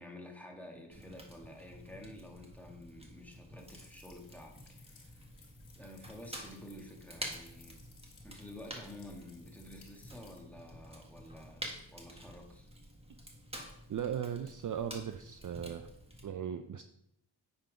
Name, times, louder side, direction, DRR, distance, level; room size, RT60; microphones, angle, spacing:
voice 1, 0.0-5.3 5.7-7.8 8.2-12.7, left 1 dB, 5° left, 0 dB, 1.7 m, -50 dB
Fire, 0.9-16.2, right 1 dB, 10° right, 1.5 m, -49 dB
sound 1, 3.6-10.4, left 5 dB, 90° left, 1.8 m, -62 dB
voice 2, 13.9-15.9 16.2-16.8, right 8 dB, 45° right, 8 dB, 0.5 m, -37 dB
8.8 x 3.9 x 5.1 m, 0.79 s
cardioid pair, 55°, 47 cm